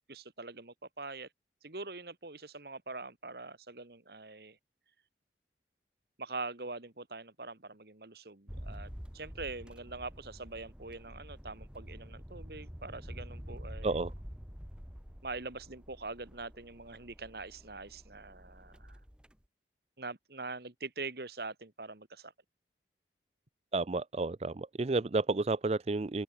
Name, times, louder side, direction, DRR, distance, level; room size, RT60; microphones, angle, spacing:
voice 1, 0.1-1.3 1.6-4.6 6.2-14.0 15.2-19.0 20.0-22.3, right 3 dB, 60° right, 1.8 m, -43 dB
sound 1, 8.5-19.3, equal, 5° right, 1.6 m, -48 dB
voice 2, 23.7-26.2, right 3 dB, 35° right, 0.4 m, -31 dB
open air
head